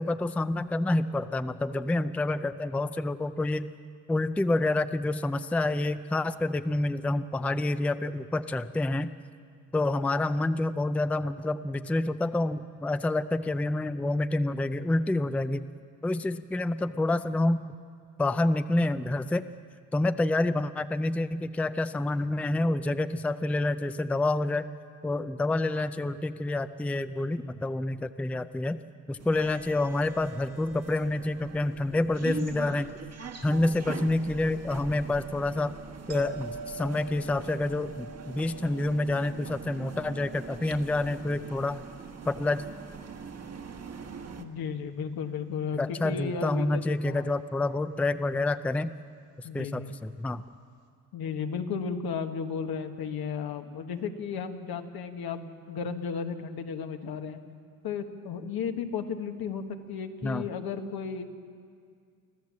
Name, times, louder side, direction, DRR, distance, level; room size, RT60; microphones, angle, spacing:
voice 1, 0.0-3.7 4.1-9.1 9.7-15.7 16.0-17.7 18.2-19.5 19.9-24.7 25.0-28.8 29.1-33.0 33.4-35.7 36.1-41.8 42.3-42.7 45.7-48.9 49.4-50.4 60.2-60.5, left 2 dB, 5° left, 12 dB, 0.4 m, -28 dB
sound 1, 29.2-44.5, right 5 dB, 45° right, 1.4 m, -43 dB
sound 2, 36.1-43.1 48.4-48.5, right 4 dB, 85° right, 2.8 m, -46 dB
voice 2, 44.4-47.3 49.4-49.9 51.1-57.4 57.8-61.4, left 6 dB, 75° left, 5 dB, 1.5 m, -34 dB
25.0 x 15.0 x 7.4 m, 2.2 s
cardioid pair, 110°, 37 cm